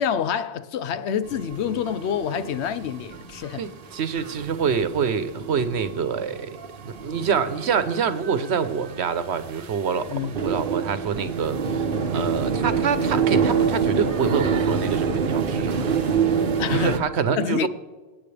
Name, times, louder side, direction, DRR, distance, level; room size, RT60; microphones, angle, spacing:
voice 1, 0.0-3.6 10.1-10.4 16.6-17.0 17.4-17.7, left 8 dB, 85° left, 0.9 m, -27 dB
sound 1, 1.2-17.0, right 6 dB, 55° right, 1.0 m, -27 dB
voice 2, 3.5-6.5 6.8-16.4 16.7-17.7, right 6 dB, 80° right, 1.1 m, -26 dB
24.0 x 9.4 x 3.4 m
omnidirectional pair, 1.1 m